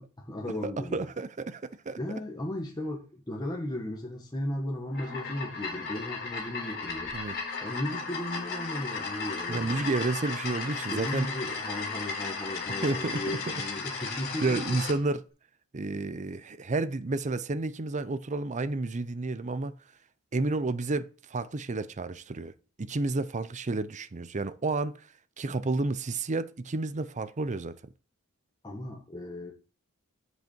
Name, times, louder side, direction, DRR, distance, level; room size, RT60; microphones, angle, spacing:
voice 1, 0.0-1.1 2.0-7.1 7.6-9.8 10.9-14.8 28.6-29.5, left 1 dB, 20° left, 1.5 m, -36 dB
voice 2, 0.6-2.0 7.1-7.3 9.5-11.3 12.8-13.4 14.4-15.2 15.7-19.7 20.3-22.5 22.8-25.0 25.4-27.8, right 3 dB, 35° right, 0.6 m, -31 dB
sound 1, 4.9-15.0, left 4 dB, 45° left, 3.6 m, -35 dB
8.0 x 8.0 x 4.5 m
head